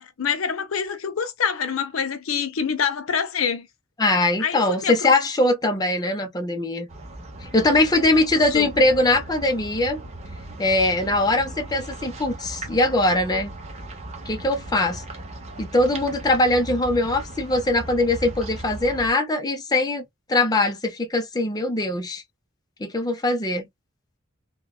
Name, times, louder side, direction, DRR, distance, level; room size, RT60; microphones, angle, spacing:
voice 1, 0.0-3.7 4.4-5.1 8.5-8.7, left 6 dB, 90° left, 0.6 m, -26 dB
voice 2, 4.0-6.9 7.4-10.0 10.6-13.5 14.3-15.0 15.6-20.0 20.3-22.2 22.8-23.7, left 2 dB, 20° left, 0.6 m, -21 dB
sound 1, 6.9-19.1, right 1 dB, 35° right, 0.9 m, -38 dB
3.5 x 2.2 x 2.3 m
head